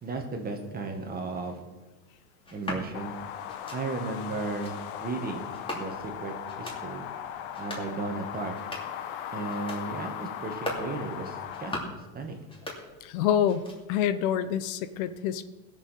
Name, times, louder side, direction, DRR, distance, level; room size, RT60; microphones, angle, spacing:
voice 1, 0.0-1.6 2.5-3.2 3.7-4.7 5.0-5.5 5.7-7.1 7.6-8.5 9.3-11.8 12.1-12.4, right 3 dB, 20° right, 4 dB, 1.9 m, -35 dB
sound 1, 2.4-2.9 3.5-3.8 4.4-4.7 5.5-6.1 6.5-6.8 7.4-7.9 8.4-9.0 9.5-9.8 10.4-10.9 11.4-12.0 12.4-13.2 13.4-14.0, left 1 dB, 10° left, 2.8 m, -39 dB
sound 2, 2.9-11.7, left 9 dB, 65° left, 1.2 m, -38 dB
voice 2, 13.0-13.6 13.9-15.4, left 9 dB, 85° left, 12 dB, 1.1 m, -26 dB
18.5 x 7.1 x 5.9 m, 1.1 s
cardioid pair, 150°, 41 cm